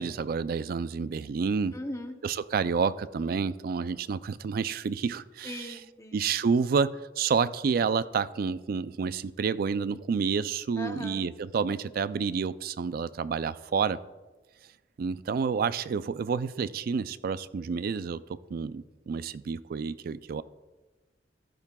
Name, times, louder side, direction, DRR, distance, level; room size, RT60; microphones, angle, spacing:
voice 1, 0.0-1.8 2.2-5.8 6.1-14.0 15.0-18.2 18.5-20.4, right 5 dB, 55° right, 15 dB, 0.3 m, -29 dB
voice 2, 1.7-2.2 5.4-6.3 10.8-11.2, left 1 dB, 15° left, 6 dB, 0.8 m, -39 dB
14.5 x 10.5 x 2.3 m, 1.2 s
head